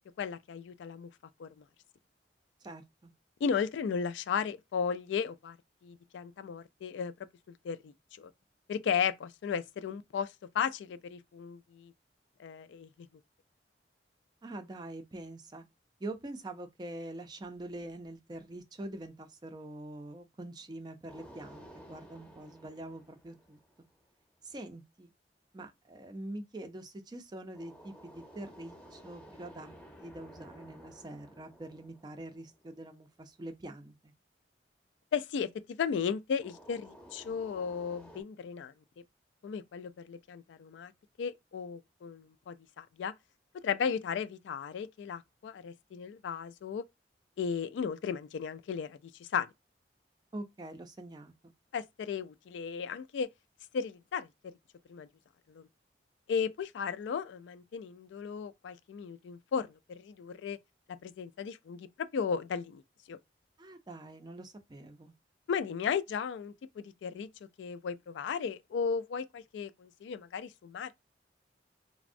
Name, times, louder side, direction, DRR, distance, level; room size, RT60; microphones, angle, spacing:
voice 1, 0.2-1.1 1.4-1.5 3.4-5.6 5.8-7.1 7.6-7.9 8.2-8.3 8.7-11.9 12.4-12.9 35.1-35.5 35.8-38.7 39.4-40.9 41.2-43.1 43.6-46.8 47.4-49.5 51.7-53.3 53.7-54.3 54.9-55.1 55.5-55.6 56.3-60.6 61.0-62.8 63.1-63.2 65.5-67.3 67.6-70.9, left 6 dB, 90° left, 0.3 m, -35 dB
voice 2, 2.6-3.1 14.4-15.6 16.0-23.6 24.4-25.1 25.5-29.8 30.0-34.1 50.3-51.3 63.6-65.1, right 1 dB, 25° right, 0.4 m, -44 dB
sound 1, 21.1-24.1 27.5-32.9 36.4-38.2, equal, 5° left, 0.7 m, -54 dB
3.4 x 2.0 x 2.5 m
head